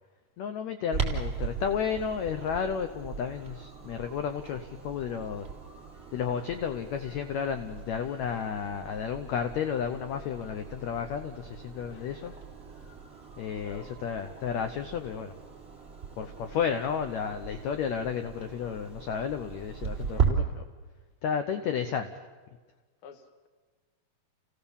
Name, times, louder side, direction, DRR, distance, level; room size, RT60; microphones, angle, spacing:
voice 1, 0.4-5.5 6.1-12.3 13.4-15.3 16.2-20.6 21.2-22.1, left 7 dB, 70° left, 8 dB, 1.8 m, -32 dB
Clock, 0.9-20.3, right 6 dB, 20° right, 3.9 m, -38 dB
voice 2, 11.9-12.4 13.6-13.9 23.0-23.5, left 7 dB, 50° left, 6 dB, 1.9 m, -50 dB
29.0 x 17.0 x 7.2 m, 1.4 s
omnidirectional pair, 4.1 m